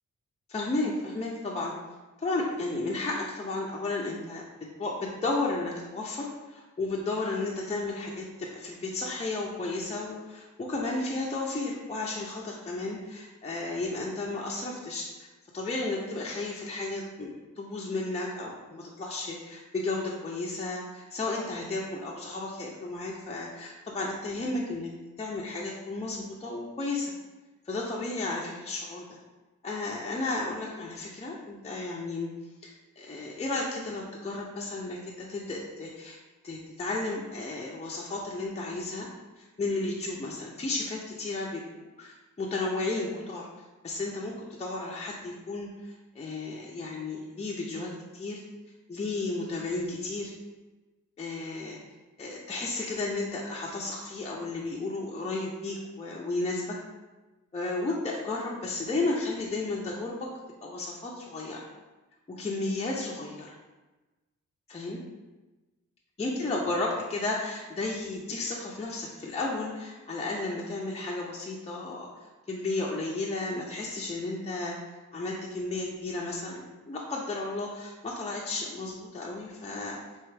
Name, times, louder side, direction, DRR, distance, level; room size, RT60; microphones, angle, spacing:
voice 1, 0.5-1.7 2.2-4.4 4.8-15.3 15.5-24.9 25.2-27.1 27.7-29.2 29.6-32.3 32.6-36.2 36.4-39.1 39.4-43.5 43.8-44.3 44.6-48.4 48.9-50.3 51.2-51.8 52.2-56.8 57.5-60.3 60.6-61.7 62.4-63.6 64.7-65.0 66.2-72.1 72.5-74.7 75.1-80.0, left 2 dB, 20° left, -3 dB, 0.6 m, -33 dB
4.4 x 3.0 x 3.3 m, 1.2 s
cardioid pair, 90°, 31 cm